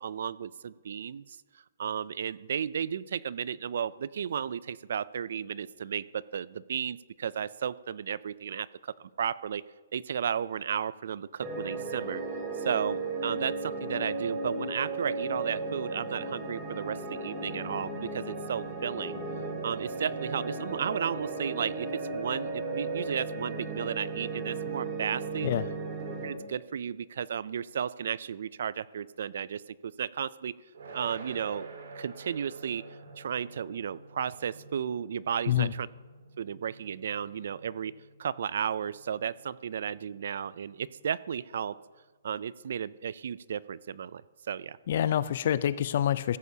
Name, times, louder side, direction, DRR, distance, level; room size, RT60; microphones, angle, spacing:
voice 1, 0.0-1.4 1.8-9.6 9.9-12.2 12.6-19.2 19.6-25.5 26.2-30.5 30.9-31.7 32.0-32.8 33.2-35.9 36.4-37.9 38.2-41.8 42.2-44.2 44.5-44.8, right 8 dB, 65° right, 20 dB, 0.3 m, -34 dB
sound 1, 11.4-26.3, right 3 dB, 25° right, 2.0 m, -35 dB
Asian Gong, 30.7-41.7, right 3 dB, 80° right, 2.2 m, -50 dB
voice 2, 44.9-46.4, left 10 dB, 50° left, 16 dB, 0.4 m, -26 dB
15.0 x 11.0 x 2.8 m, 1.4 s
hypercardioid pair, 160°, 0 cm